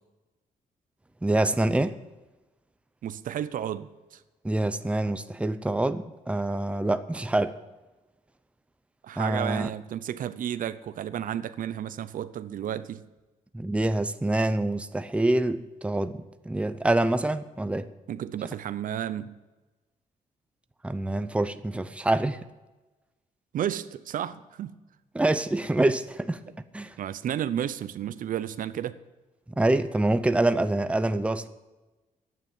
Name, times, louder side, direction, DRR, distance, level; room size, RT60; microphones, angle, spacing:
voice 1, 1.2-2.0 4.4-7.6 9.2-9.7 13.5-17.9 20.8-22.4 25.1-26.4 26.7-27.0 29.6-31.5, right 2 dB, 10° right, 0.7 m, -26 dB
voice 2, 3.0-4.2 9.0-13.1 18.1-19.4 23.5-24.7 27.0-29.0, right 10 dB, 70° right, 0.7 m, -32 dB
11.0 x 9.2 x 7.4 m
cardioid pair, 95°, 14 cm